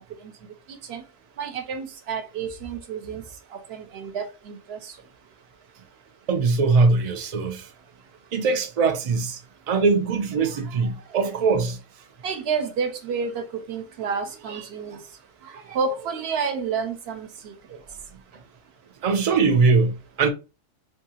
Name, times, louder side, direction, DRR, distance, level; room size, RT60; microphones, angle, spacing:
voice 1, 0.7-1.0 1.4-3.2 3.5-4.9 11.2-11.3 12.2-15.0 15.5-17.8, right 5 dB, 60° right, 0.8 m, -30 dB
voice 2, 6.3-7.7 8.3-9.4 9.7-11.8 19.0-20.3, right 4 dB, 80° right, 0.3 m, -21 dB
3.0 x 2.7 x 2.8 m
omnidirectional pair, 1.3 m